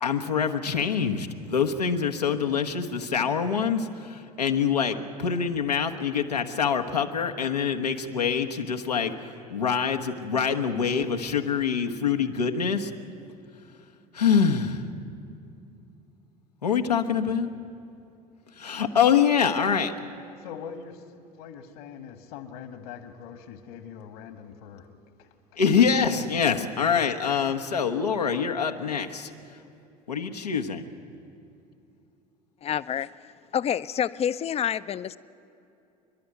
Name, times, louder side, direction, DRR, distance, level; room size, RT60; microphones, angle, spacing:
voice 1, 0.0-12.9 14.1-14.8 16.6-17.5 18.6-19.9 25.6-29.3 30.1-30.8, left 6 dB, 90° left, 4 dB, 1.1 m, -25 dB
voice 2, 20.4-20.9 21.4-24.9 25.2-26.4, left 8 dB, 70° left, 8 dB, 1.7 m, -42 dB
voice 3, 32.6-33.1 33.5-35.2, left 9 dB, 30° left, 15 dB, 0.6 m, -27 dB
29.0 x 11.5 x 9.3 m, 2.7 s
figure-of-eight pair, 70°, 20 cm